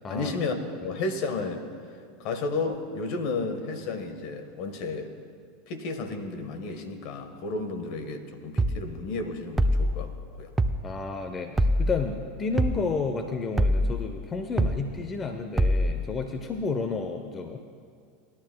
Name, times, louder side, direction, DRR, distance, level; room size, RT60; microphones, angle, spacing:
voice 1, 0.1-1.6 2.2-5.1 5.7-10.1 10.4-10.5, left 3 dB, 55° left, 6 dB, 1.4 m, -32 dB
sound 1, 8.6-8.8 9.6-10.0 10.6-10.8 11.6-12.0 12.6-12.8 13.6-14.0 14.6-14.8 15.6-16.0, equal, 15° right, 0.6 m, -23 dB
voice 2, 10.8-17.6, left 4 dB, 30° left, 6 dB, 0.8 m, -31 dB
20.0 x 12.0 x 2.3 m, 2.2 s
hypercardioid pair, 85°, 0 cm